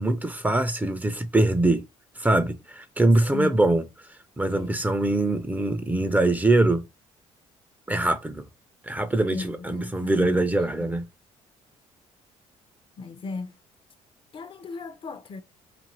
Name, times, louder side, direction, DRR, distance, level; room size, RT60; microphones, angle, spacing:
voice 1, 0.0-1.8 2.2-3.8 4.4-6.9 7.9-8.5 8.8-11.1, right 2 dB, 10° right, 0.5 m, -23 dB
voice 2, 3.2-3.6 4.5-4.8 9.3-10.5 10.8-10.9 13.0-13.5 14.3-15.4, left 3 dB, 40° left, 0.5 m, -36 dB
2.6 x 2.5 x 2.9 m
supercardioid pair, 80°, 13 cm